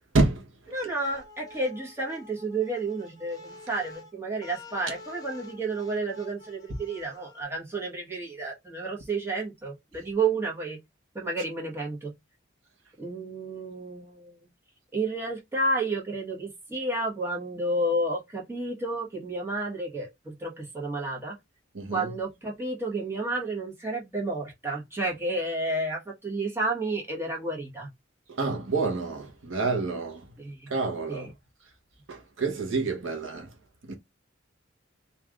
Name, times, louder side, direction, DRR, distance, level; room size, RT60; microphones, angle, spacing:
voice 1, 0.1-0.7 21.7-22.1 28.3-30.3 30.7-31.3 32.1-33.6 33.8-33.9, right 3 dB, 80° right, 1.0 m, -28 dB
sound 1, 0.7-7.4, left 3 dB, 20° left, 0.7 m, -48 dB
voice 2, 0.7-10.8 11.1-12.1 13.0-14.3 14.9-21.3 21.9-27.9 30.4-30.7 31.1-31.3, right 2 dB, 15° right, 1.4 m, -31 dB
3.3 x 2.5 x 3.6 m
head